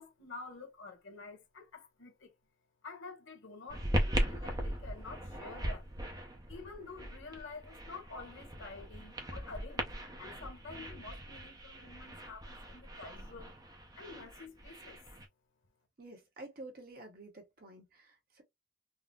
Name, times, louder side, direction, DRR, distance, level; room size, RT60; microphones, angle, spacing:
voice 1, 0.0-2.3 2.8-5.9 6.5-9.9 10.2-13.5 13.9-15.0, left 4 dB, 90° left, 1.2 m, -49 dB
sound 1, 3.7-15.3, right 1 dB, 20° right, 0.6 m, -39 dB
voice 2, 16.0-18.4, right 2 dB, 50° right, 1.0 m, -50 dB
3.8 x 2.0 x 2.3 m
head